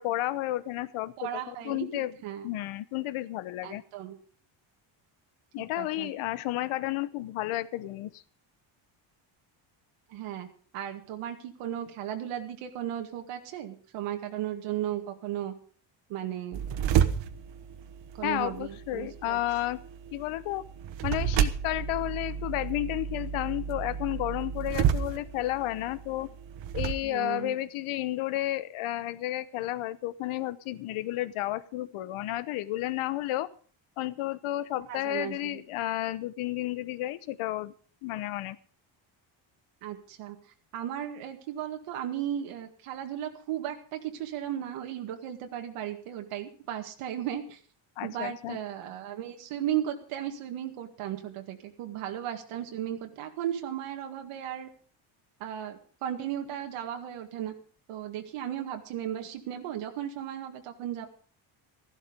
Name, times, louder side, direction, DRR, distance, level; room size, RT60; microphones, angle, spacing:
voice 1, 0.0-2.1 2.4-3.8 5.5-8.2 18.2-19.8 20.1-20.6 21.0-26.3 26.7-33.5 34.0-37.7 38.0-38.6 48.0-48.6, left 15 dB, 75° left, 16 dB, 1.0 m, -32 dB
voice 2, 1.2-2.5 3.6-4.2 5.8-6.1 10.1-10.5 10.7-15.5 16.1-16.6 18.1-19.4 27.0-27.6 34.9-35.6 39.8-40.4 40.7-47.6 48.0-54.7 55.4-57.5 57.9-61.1, right 11 dB, 80° right, 4 dB, 2.0 m, -35 dB
sound 1, 16.5-26.9, right 9 dB, 60° right, 1.2 m, -31 dB
14.5 x 12.0 x 5.2 m, 0.43 s
cardioid pair, 145°, 50 cm